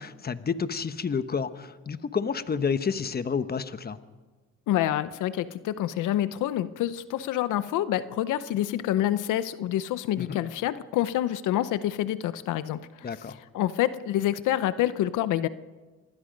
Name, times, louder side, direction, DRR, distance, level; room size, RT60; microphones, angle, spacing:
voice 1, 0.0-4.0 10.2-10.4 13.0-13.4, left 6 dB, 30° left, 11 dB, 1.1 m, -30 dB
voice 2, 4.7-15.5, left 12 dB, 85° left, 14 dB, 0.8 m, -27 dB
26.5 x 20.5 x 5.3 m, 1.3 s
cardioid pair, 90°, 30 cm